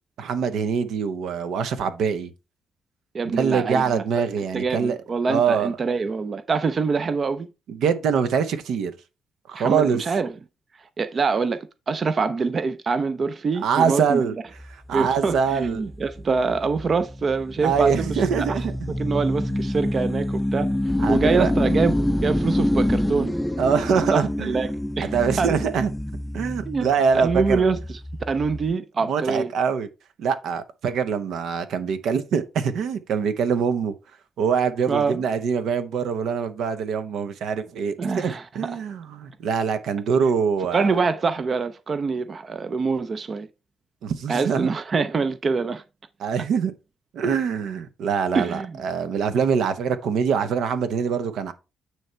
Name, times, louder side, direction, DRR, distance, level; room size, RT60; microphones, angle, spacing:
voice 1, 0.2-2.3 3.2-5.0 5.3-5.7 7.7-8.9 9.5-10.0 13.6-14.3 14.7-15.8 17.6-18.9 21.0-21.5 23.6-24.5 25.0-25.9 26.3-27.6 29.0-29.9 30.2-33.9 34.4-41.0 44.0-44.7 46.2-46.7 47.1-51.5, right 6 dB, 75° right, 0.8 m, -24 dB
voice 2, 3.1-4.0 4.5-7.5 9.5-10.3 11.0-14.3 14.9-18.5 18.9-23.4 24.1-24.7 25.0-25.6 26.7-26.9 27.1-28.0 28.3-29.5 34.9-35.2 38.0-38.8 40.7-43.5 44.3-45.8 48.3-48.8, right 4 dB, 40° right, 0.5 m, -25 dB
sound 1, 14.6-28.7, left 1 dB, 5° left, 0.5 m, -27 dB
9.1 x 3.3 x 4.4 m
cardioid pair, 90°, 0 cm